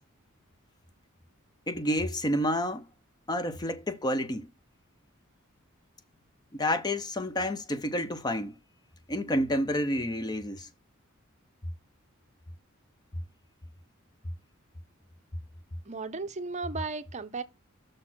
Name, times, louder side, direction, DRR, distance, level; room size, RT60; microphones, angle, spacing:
voice 1, 1.7-2.8 3.3-4.5 6.5-8.6 9.1-10.7, left 1 dB, 20° left, 0.5 m, -29 dB
voice 2, 15.9-17.4, right 4 dB, 35° right, 0.7 m, -35 dB
6.4 x 4.0 x 5.9 m
head